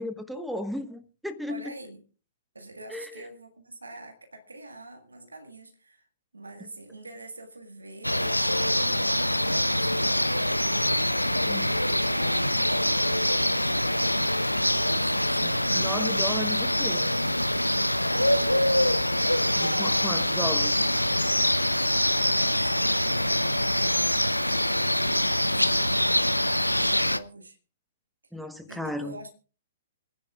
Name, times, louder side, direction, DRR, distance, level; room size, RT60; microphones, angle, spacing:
voice 1, 0.0-1.6 2.9-3.1 11.5-11.8 15.4-17.1 19.6-20.9 28.3-29.2, left 1 dB, ahead, 1.2 m, -35 dB
voice 2, 1.5-2.0 2.6-6.1 6.3-10.3 11.7-13.8 14.7-16.2 18.1-19.1 22.2-24.3 25.4-26.2 26.7-27.6 28.7-29.3, right 2 dB, 75° right, 1.8 m, -44 dB
sound 1, 8.0-27.2, left 1 dB, 90° left, 0.5 m, -24 dB
27.5 x 10.0 x 2.4 m
figure-of-eight pair, 115°, 0 cm